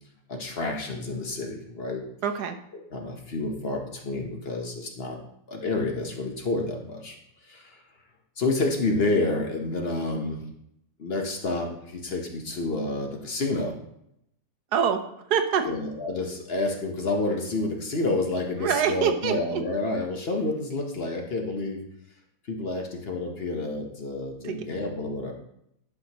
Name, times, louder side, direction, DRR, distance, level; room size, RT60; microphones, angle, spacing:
voice 1, 0.3-2.0 2.9-5.2 5.5-7.2 7.4-7.8 8.4-10.5 11.0-13.8 15.6-21.8 22.5-25.3, left 2 dB, 45° left, 2 dB, 1.0 m, -29 dB
voice 2, 2.2-2.6 14.7-15.0 15.3-15.7 18.6-19.6 24.4-24.6, right 7 dB, 90° right, 7 dB, 1.3 m, -24 dB
10.5 x 5.8 x 2.9 m, 0.76 s
omnidirectional pair, 1.6 m